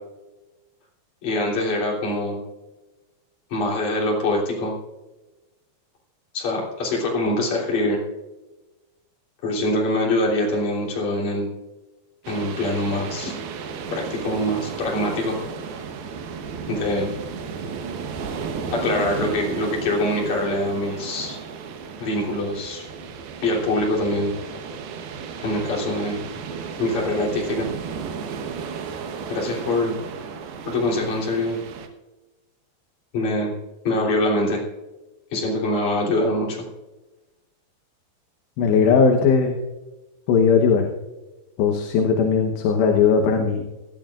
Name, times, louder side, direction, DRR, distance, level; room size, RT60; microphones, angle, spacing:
voice 1, 1.2-2.4 3.5-4.7 6.3-8.0 9.4-11.5 12.3-13.3 13.9-15.4 16.7-17.1 18.7-21.4 22.0-22.9 23.4-24.3 25.4-26.2 26.8-27.7 29.3-30.0 30.7-31.6 33.1-33.5 33.8-34.6 35.3-36.6, left 1 dB, 45° left, -3 dB, 4.5 m, -24 dB
sound 1, 12.2-31.9, right 6 dB, 70° right, 2.8 m, -34 dB
voice 2, 38.6-39.6 40.3-40.9 41.6-43.6, left 5 dB, 75° left, 2 dB, 3.2 m, -18 dB
19.5 x 13.0 x 2.5 m, 1.1 s
omnidirectional pair, 5.2 m